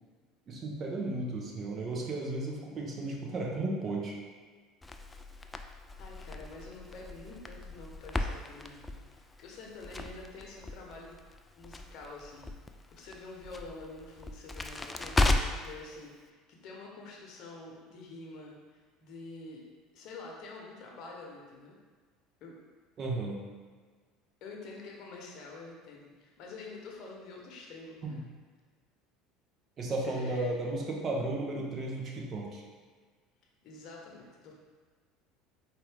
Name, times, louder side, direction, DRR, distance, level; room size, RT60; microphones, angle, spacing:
voice 1, 0.5-4.2 23.0-23.4 28.0-28.2 29.8-32.6, right 2 dB, 40° right, -1 dB, 0.9 m, -34 dB
Crackle, 4.8-15.7, left 2 dB, 15° left, 0.3 m, -35 dB
voice 2, 6.0-11.2 11.5-12.5 12.9-19.6 19.9-21.8 22.4-22.6 24.4-28.3 30.0-30.5 33.6-34.5, left 3 dB, 60° left, -1 dB, 0.9 m, -47 dB
4.4 x 2.6 x 3.4 m, 1.5 s
hypercardioid pair, 80°, 0 cm